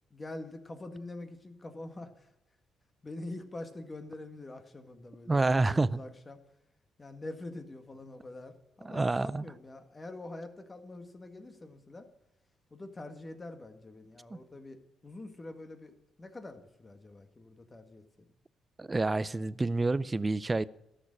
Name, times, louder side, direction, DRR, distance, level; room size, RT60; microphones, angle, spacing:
voice 1, 0.1-2.3 3.0-6.4 7.0-12.1 12.7-18.0, left 2 dB, 25° left, 6 dB, 1.8 m, -45 dB
voice 2, 5.3-6.0 8.8-9.5 18.8-20.7, right 3 dB, 20° right, 18 dB, 0.5 m, -28 dB
13.5 x 6.8 x 8.8 m, 0.86 s
cardioid pair, 90°, 0 cm